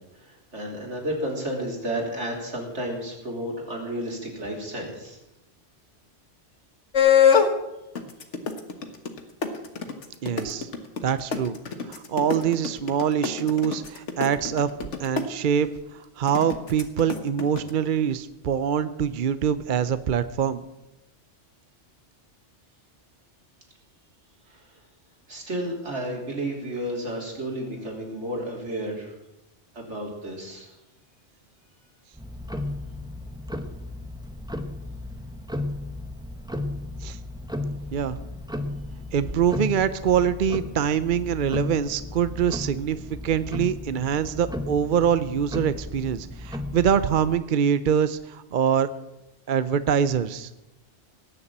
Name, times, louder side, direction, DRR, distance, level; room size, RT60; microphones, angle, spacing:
voice 1, 0.2-5.2 24.5-24.6 25.3-29.1 29.7-30.7, right 1 dB, 70° right, -1 dB, 3.8 m, -32 dB
sound 1, 6.9-7.5 7.9-15.2 16.3-17.7, left 7 dB, 80° left, 1.7 m, -22 dB
voice 2, 10.2-10.7 11.0-11.6 11.8-14.7 15.0-20.6 37.0-37.2 37.9-38.2 39.1-48.9 49.5-50.5, right 8 dB, 55° right, 13 dB, 0.7 m, -24 dB
Tick-tock, 32.1-47.4, left 1 dB, 5° right, 1.0 m, -35 dB
18.5 x 7.0 x 8.6 m, 0.94 s
omnidirectional pair, 1.2 m